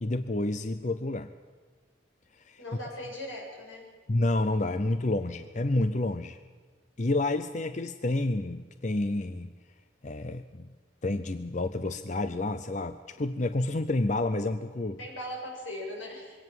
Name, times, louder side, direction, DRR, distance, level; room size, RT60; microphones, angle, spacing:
voice 1, 0.0-1.3 2.5-2.6 4.1-6.4 7.0-9.5 10.0-10.7 11.0-15.0, left 2 dB, 40° left, 11 dB, 0.6 m, -29 dB
voice 2, 2.6-3.9 15.0-16.4, left 1 dB, 85° left, -1 dB, 7.3 m, -39 dB
23.0 x 17.5 x 7.6 m, 1.5 s
head